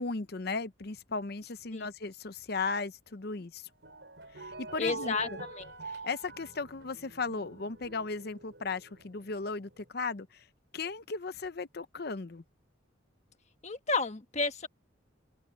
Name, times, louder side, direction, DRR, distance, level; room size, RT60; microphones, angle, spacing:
voice 1, 0.0-3.7 4.3-5.4 5.8-10.5 10.7-12.4, left 4 dB, 55° left, 0.8 m, -36 dB
sound 1, 3.7-9.5, right 3 dB, 65° right, 6.6 m, -45 dB
voice 2, 4.8-5.7 13.6-14.7, left 4 dB, 35° left, 1.4 m, -32 dB
head